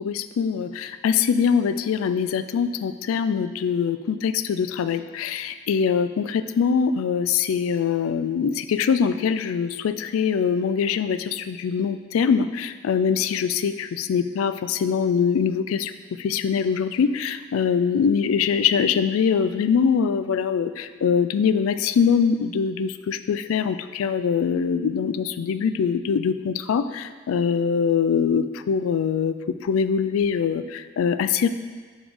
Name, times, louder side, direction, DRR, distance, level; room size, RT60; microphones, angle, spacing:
voice 1, 0.0-15.9 16.2-29.3 29.6-31.5, left 6 dB, 90° left, 12 dB, 0.3 m, -23 dB
7.0 x 3.6 x 4.9 m, 1.6 s
head